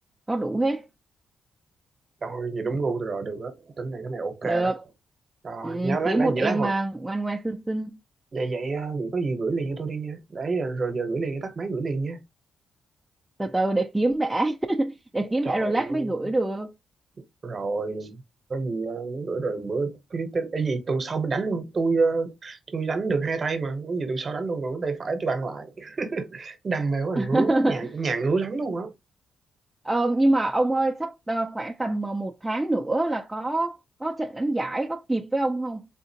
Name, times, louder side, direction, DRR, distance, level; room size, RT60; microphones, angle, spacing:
voice 1, 0.3-0.8 4.4-4.8 5.6-8.0 13.4-16.7 27.2-27.8 29.8-35.9, right 2 dB, 10° right, 0.4 m, -25 dB
voice 2, 2.2-4.7 5.4-6.7 8.3-12.2 15.2-16.3 17.4-18.2 18.5-28.9, right 4 dB, 40° right, 0.8 m, -28 dB
3.7 x 2.4 x 2.7 m
cardioid pair, 90°, 0 cm